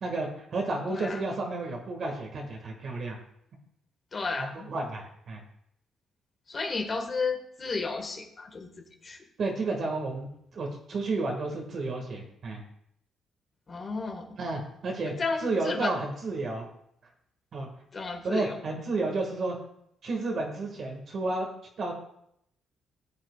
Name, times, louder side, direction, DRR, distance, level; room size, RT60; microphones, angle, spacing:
voice 1, 0.0-3.2 4.4-5.4 9.4-10.3 10.5-12.6 14.3-15.1 15.4-16.7 17.5-17.7 18.2-19.6 20.0-21.5 21.8-21.9, right 3 dB, 55° right, 1 dB, 1.9 m, -31 dB
voice 2, 0.9-1.2 4.1-4.7 6.5-8.7 9.0-9.2 13.7-14.2 15.2-15.9 17.9-18.6, left 4 dB, 40° left, 3 dB, 1.6 m, -32 dB
14.0 x 7.8 x 2.4 m, 0.73 s
cardioid pair, 90°, 0 cm